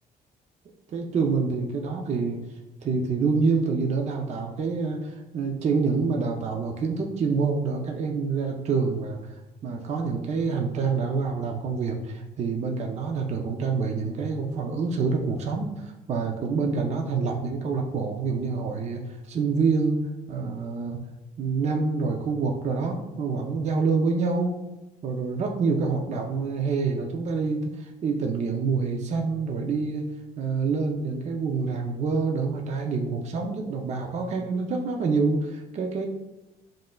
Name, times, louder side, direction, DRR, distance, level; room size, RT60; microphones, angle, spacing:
voice 1, 0.9-2.4 2.8-9.2 9.6-20.0 20.3-21.0 21.4-24.6 25.0-30.1 30.4-36.1, right 4 dB, 40° right, 2 dB, 0.5 m, -27 dB
7.3 x 2.5 x 2.3 m, 1.0 s
cardioid pair, 110°, 17 cm